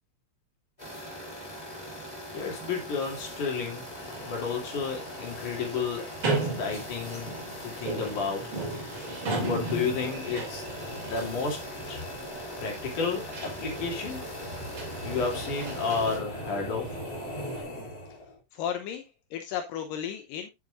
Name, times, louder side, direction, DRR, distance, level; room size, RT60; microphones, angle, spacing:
sound 1, 0.8-16.2, equal, 10° left, 4.5 m, -41 dB
voice 1, 2.3-3.8 4.2-6.0 6.6-7.3 7.6-8.5 9.4-10.6 11.0-11.6 11.9-12.0 12.6-14.2 15.0-17.0, left 5 dB, 65° left, 4.2 m, -31 dB
sound 2, 3.8-18.4, left 1 dB, 30° left, 3.1 m, -43 dB
sound 3, 6.2-17.6, right 2 dB, 45° right, 3.6 m, -36 dB
voice 2, 18.5-20.5, left 9 dB, 85° left, 2.5 m, -34 dB
9.5 x 9.2 x 2.6 m
omnidirectional pair, 3.9 m